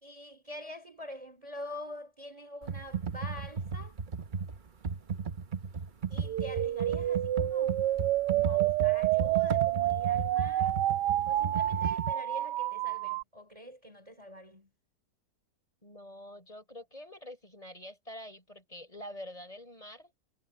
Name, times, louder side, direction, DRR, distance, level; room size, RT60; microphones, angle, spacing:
voice 1, 0.0-4.0 6.1-7.8 8.3-10.8 11.3-14.7, left 1 dB, 20° right, 2.8 m, -45 dB
Computer keyboard, 2.6-12.1, right 6 dB, 35° right, 0.8 m, -35 dB
sound 1, 6.3-13.2, right 14 dB, 80° right, 1.2 m, -29 dB
voice 2, 15.8-20.1, left 1 dB, 20° left, 6.0 m, -46 dB
omnidirectional pair, 1.9 m